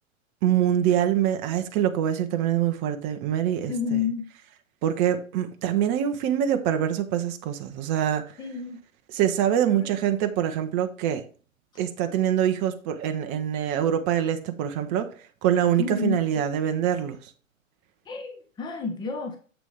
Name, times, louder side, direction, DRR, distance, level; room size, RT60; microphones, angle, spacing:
voice 1, 0.4-4.0 4.8-8.2 9.1-11.2 11.8-15.1 15.4-17.2, right 10 dB, 20° right, 0.6 m, -24 dB
voice 2, 3.7-4.2 8.4-8.8 9.7-9.9 15.8-16.2 18.1-19.4, left 6 dB, 10° left, 1.0 m, -30 dB
7.2 x 6.0 x 3.4 m
figure-of-eight pair, 115°, 40 cm